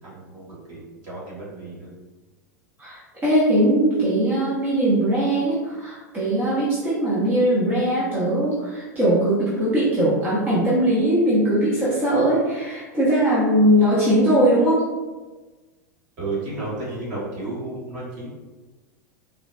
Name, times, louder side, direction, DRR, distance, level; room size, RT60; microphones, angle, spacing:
voice 1, 0.0-1.9 16.2-18.3, right 2 dB, 45° right, -7 dB, 1.4 m, -32 dB
voice 2, 2.8-14.8, right 1 dB, 20° right, -9 dB, 0.8 m, -20 dB
3.8 x 2.2 x 2.2 m, 1.2 s
figure-of-eight pair, 90°, 9 cm